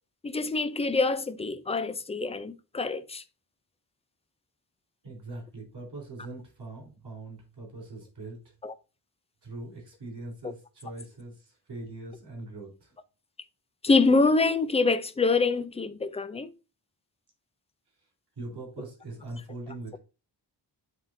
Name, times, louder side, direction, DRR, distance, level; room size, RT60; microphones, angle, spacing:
voice 1, 0.2-3.2 8.6-8.7 10.4-10.5 13.8-16.5, left 3 dB, 15° left, 0.4 m, -25 dB
voice 2, 5.0-8.4 9.4-11.3 11.7-12.7 18.4-20.0, right 2 dB, 70° right, 3.5 m, -41 dB
10.5 x 3.6 x 2.6 m
wide cardioid pair, 155°, 42 cm